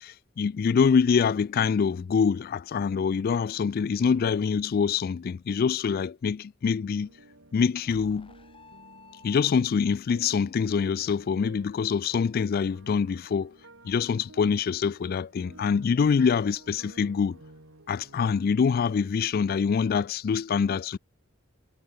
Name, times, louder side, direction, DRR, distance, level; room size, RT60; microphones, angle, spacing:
voice 1, 0.0-7.1 7.5-8.3 9.2-13.5 13.8-17.4 17.9-21.0, left 6 dB, 50° left, 0.3 m, -25 dB
sound 1, 6.6-9.4 10.0-19.1, right 1 dB, 80° right, 5.6 m, -53 dB
sound 2, 7.9-10.0, left 3 dB, 25° left, 3.4 m, -52 dB
head